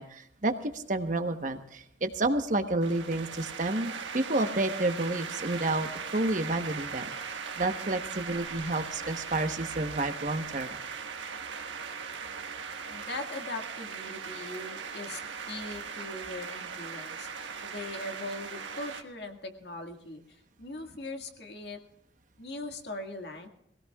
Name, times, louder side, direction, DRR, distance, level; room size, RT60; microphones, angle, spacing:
voice 1, 0.0-7.1 7.6-10.8, right 2 dB, 40° right, 7 dB, 1.0 m, -30 dB
sound 1, 2.8-19.0, right 6 dB, 85° right, 1.6 m, -39 dB
voice 2, 12.9-21.8 22.4-23.5, left 2 dB, 60° left, 4 dB, 1.9 m, -40 dB
22.5 x 17.0 x 2.4 m, 0.78 s
head